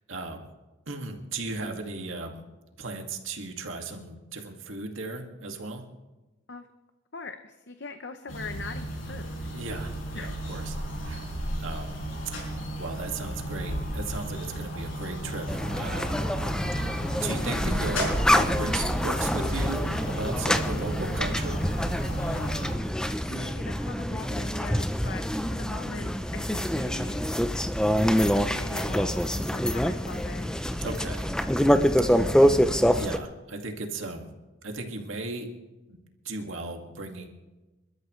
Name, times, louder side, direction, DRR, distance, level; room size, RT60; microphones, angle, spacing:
voice 1, 0.1-0.5 0.9-2.4 2.8-5.8 9.5-10.8 11.0-11.3 11.6-11.9 12.3-16.2 16.8-21.6 30.8-31.3 32.0-32.2 32.9-34.3 34.6-35.5 35.9-36.0 36.2-37.3, right 3 dB, 80° right, 2 dB, 2.1 m, -36 dB
voice 2, 7.1-9.3 10.1-10.3 22.3-22.6 23.3-27.3 28.5-30.6, left 3 dB, 55° left, 7 dB, 0.8 m, -41 dB
sound 1, 8.3-22.7, right 1 dB, 80° left, 5.3 m, -34 dB
sound 2, 15.5-33.2, equal, 5° left, 0.6 m, -26 dB
28.0 x 13.0 x 3.2 m, 1.1 s
head